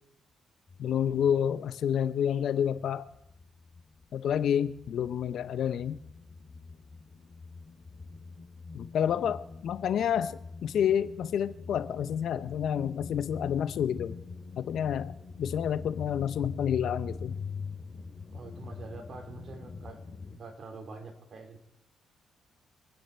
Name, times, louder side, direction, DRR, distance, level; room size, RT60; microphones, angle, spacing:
sound 1, 0.7-2.3 2.6-20.4, left 4 dB, 30° left, 2.9 m, -44 dB
voice 1, 0.8-3.1 4.1-6.0 8.7-14.2 14.6-17.4, left 9 dB, 70° left, 14 dB, 0.8 m, -29 dB
voice 2, 18.3-20.0 20.3-21.6, right 4 dB, 50° right, 5 dB, 2.9 m, -45 dB
26.0 x 9.4 x 4.5 m, 0.82 s
cardioid pair, 90°, 0 cm